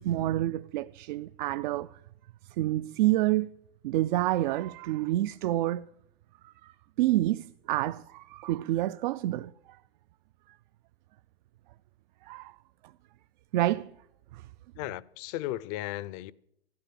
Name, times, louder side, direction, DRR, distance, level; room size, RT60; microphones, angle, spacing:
voice 1, 0.0-1.9 2.6-3.5 3.8-5.9 6.4-9.5 12.2-12.5 13.5-13.9 14.3-14.5, right 15 dB, 50° right, 0.4 m, -28 dB
voice 2, 14.8-16.3, left 15 dB, 40° left, 0.6 m, -35 dB
13.0 x 11.0 x 7.5 m
hypercardioid pair, 125°, 31 cm